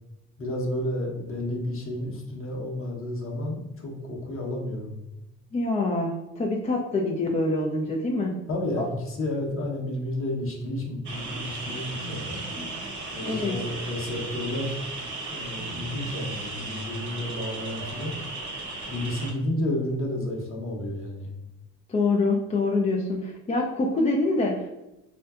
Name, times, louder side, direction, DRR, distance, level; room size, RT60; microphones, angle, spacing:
voice 1, 0.4-4.9 8.5-12.4 13.1-14.8 15.3-18.2 18.9-21.3, left 1 dB, 40° left, -1 dB, 0.8 m, -31 dB
voice 2, 5.5-8.4 13.2-13.6 21.9-24.7, left 2 dB, 20° left, -1 dB, 0.3 m, -25 dB
sound 1, 11.0-19.3, right 2 dB, 55° right, 0.8 m, -35 dB
2.6 x 2.2 x 2.3 m, 0.96 s
supercardioid pair, 65°, 35 cm